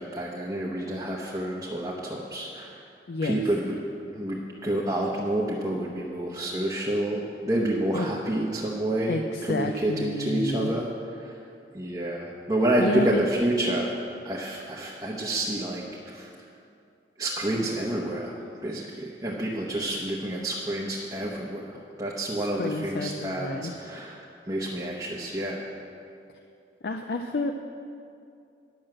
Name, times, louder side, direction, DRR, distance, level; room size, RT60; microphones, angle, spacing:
voice 1, 0.0-2.8 3.2-3.8 4.1-10.9 11.3-11.4 11.7-14.0 14.2-16.3 17.2-25.6, right 1 dB, 20° right, -4 dB, 0.9 m, -29 dB
voice 2, 3.1-3.4 7.9-8.1 9.1-10.8 12.8-13.2 22.3-23.7 26.8-27.5, left 2 dB, 60° left, 5 dB, 0.4 m, -30 dB
10.5 x 6.2 x 7.6 m, 2.5 s
head